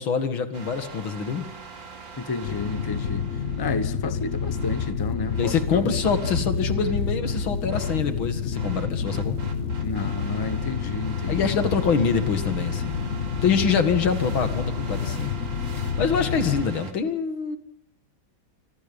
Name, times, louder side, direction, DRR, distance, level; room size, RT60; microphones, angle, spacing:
voice 1, 0.0-1.5 5.4-9.4 11.3-13.0 13.4-15.3 16.0-17.6, left 6 dB, 90° left, 2.8 m, -25 dB
sound 1, 0.5-16.9, right 5 dB, 70° right, 3.3 m, -44 dB
voice 2, 2.2-3.2 3.6-5.9 9.8-11.7 13.6-13.7, left 3 dB, 20° left, 0.7 m, -32 dB
sound 2, 2.4-16.7, left 6 dB, 45° left, 1.4 m, -28 dB
26.5 x 26.0 x 5.4 m
omnidirectional pair, 2.1 m